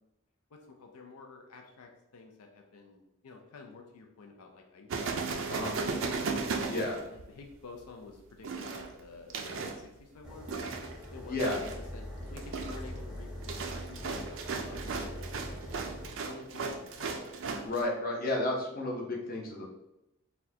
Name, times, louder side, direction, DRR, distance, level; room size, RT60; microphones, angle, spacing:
voice 1, 0.5-5.6 5.9-6.3 6.7-10.7 11.1-11.7 11.9-17.5, left 4 dB, 85° left, 3 dB, 0.5 m, -50 dB
sound 1, 4.9-7.5 8.4-9.8 10.5-11.0 11.4-11.8 12.2-17.8, right 4 dB, 60° right, 0.4 m, -36 dB
sound 2, 10.2-16.1, equal, 5° right, 0.7 m, -43 dB
voice 2, 11.3-11.6 17.6-19.7, left 2 dB, 40° left, -1 dB, 0.7 m, -32 dB
4.3 x 2.2 x 2.7 m, 0.91 s
head